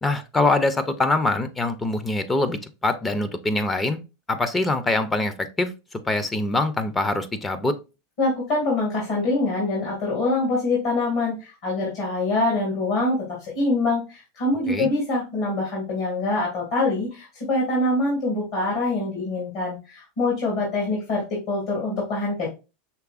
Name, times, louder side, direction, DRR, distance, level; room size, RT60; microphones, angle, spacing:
voice 1, 0.0-4.0 4.3-7.8 14.7-14.9, left 2 dB, 15° left, 11 dB, 0.6 m, -24 dB
voice 2, 8.2-22.5, left 2 dB, 60° left, -3 dB, 2.3 m, -24 dB
5.8 x 3.2 x 2.5 m, 0.28 s
hypercardioid pair, 110°, 0 cm